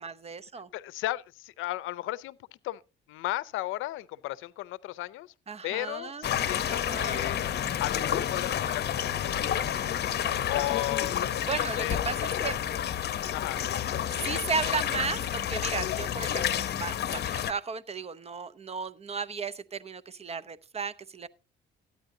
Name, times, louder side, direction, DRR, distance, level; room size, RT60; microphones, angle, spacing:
voice 1, 0.0-0.7 5.5-6.3 6.7-7.3 11.5-12.6 14.1-21.3, right 5 dB, 30° right, 0.7 m, -35 dB
voice 2, 0.7-2.4 2.6-2.8 3.1-5.3 5.6-7.4 7.8-8.9 9.2-9.7 10.5-11.2 11.6-11.9 13.3-13.6, left 16 dB, 90° left, 0.5 m, -34 dB
sound 1, 6.2-17.5, left 10 dB, 55° left, 0.8 m, -30 dB
14.0 x 9.5 x 2.7 m
cardioid pair, 90°, 20 cm